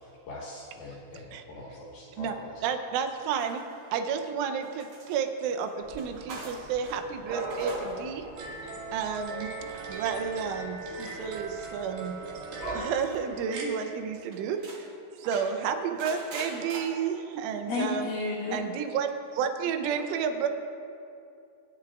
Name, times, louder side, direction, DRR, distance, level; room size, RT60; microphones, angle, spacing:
voice 1, 0.0-2.6, left 1 dB, 65° left, -5 dB, 2.8 m, -43 dB
voice 2, 2.6-3.6 3.9-8.3 8.9-12.2 12.7-14.9 15.2-18.1 18.5-20.5, right 7 dB, 80° right, 7 dB, 3.1 m, -31 dB
sound 1, 3.3-4.2 4.6-7.0 7.3-8.0 8.2-8.6 9.6-10.0 11.1-11.8 13.0-13.3 13.7-13.8 14.1-14.8 15.2-16.8, right 2 dB, 40° right, 4.1 m, -44 dB
Dog / Cat, 5.8-12.9, right 2 dB, 25° right, 1.9 m, -42 dB
sound 2, 8.3-13.7, right 3 dB, 60° right, 3.5 m, -39 dB
voice 3, 17.7-18.6, left 3 dB, 85° left, -5 dB, 1.8 m, -30 dB
24.5 x 11.0 x 2.4 m, 2.6 s
omnidirectional pair, 5.9 m